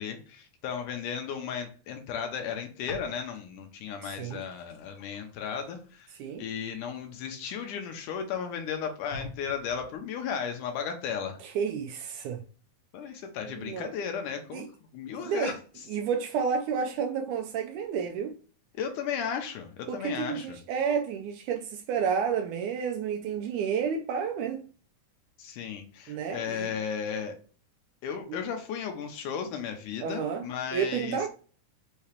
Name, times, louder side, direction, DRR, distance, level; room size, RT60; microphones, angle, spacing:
voice 1, 0.0-6.1 6.4-11.4 12.9-14.6 14.9-15.6 18.7-20.6 25.4-27.4 28.0-31.2, left 7 dB, 80° left, 2.1 m, -35 dB
sound 1, 2.8-3.6 3.9-7.9 8.5-8.6 9.1-10.0, left 3 dB, 60° left, 2.1 m, -48 dB
voice 2, 4.0-4.4 6.2-6.4 11.4-12.4 13.5-13.9 14.5-14.7 15.1-15.5 15.9-18.3 19.9-24.6 26.1-26.7 28.3-28.4 30.0-30.4 30.7-31.3, right 6 dB, 80° right, 1.8 m, -30 dB
5.6 x 2.8 x 3.2 m
omnidirectional pair, 3.9 m